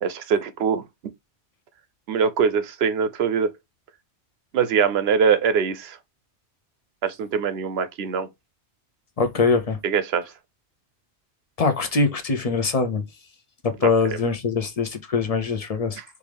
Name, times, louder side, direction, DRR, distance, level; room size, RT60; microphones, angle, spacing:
voice 1, 0.0-0.8 2.1-3.5 4.5-6.0 7.0-8.3 9.8-10.3 13.8-14.2 16.0-16.1, right 6 dB, 65° right, 0.9 m, -23 dB
voice 2, 9.2-9.8 11.6-13.0 13.6-16.0, left 4 dB, 40° left, 0.6 m, -22 dB
4.6 x 2.5 x 3.3 m
omnidirectional pair, 1.2 m